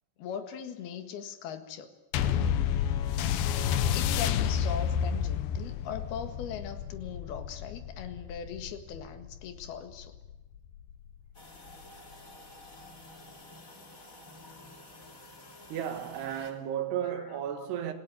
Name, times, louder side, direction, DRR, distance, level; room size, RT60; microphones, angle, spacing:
voice 1, 0.2-1.9 3.9-10.1 17.5-17.7, left 7 dB, 60° left, 3.2 m, -40 dB
sound 1, 2.1-10.9 11.7-11.8, left 8 dB, 80° left, 2.2 m, -30 dB
sound 2, 11.3-16.5, left 2 dB, 20° left, 2.4 m, -50 dB
voice 2, 15.7-17.9, right 10 dB, 60° right, 3.6 m, -33 dB
27.0 x 17.5 x 9.6 m
omnidirectional pair, 5.7 m